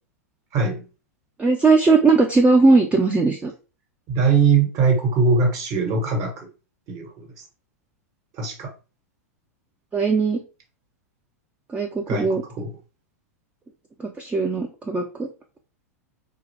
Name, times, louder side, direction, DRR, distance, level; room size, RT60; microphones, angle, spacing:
voice 1, 0.5-0.8 4.1-6.5 6.9-7.3 8.4-8.7 12.1-12.7, right 4 dB, 40° right, 1.3 m, -21 dB
voice 2, 1.4-3.5 9.9-10.4 11.7-12.4 14.0-15.3, right 3 dB, 15° right, 0.4 m, -19 dB
3.2 x 2.3 x 3.2 m
hypercardioid pair, 100°, 8 cm